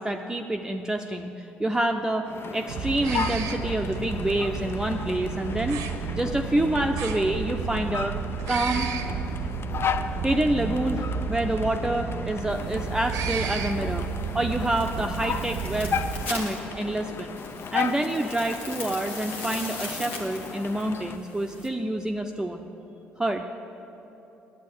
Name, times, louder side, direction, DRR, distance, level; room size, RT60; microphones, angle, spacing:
voice 1, 0.0-1.3 1.6-5.8 6.1-8.2 8.5-8.9 10.2-14.1 14.3-17.4 17.7-22.7 23.2-23.4, right 1 dB, 10° right, 4 dB, 0.6 m, -27 dB
sound 1, 2.2-21.2, left 6 dB, 45° left, 0.5 m, -35 dB
sound 2, 2.7-16.2, right 6 dB, 70° right, 0.8 m, -32 dB
sound 3, 12.5-21.7, left 2 dB, 85° left, 1.1 m, -40 dB
9.4 x 8.3 x 9.0 m, 2.9 s
hypercardioid pair, 50°, 6 cm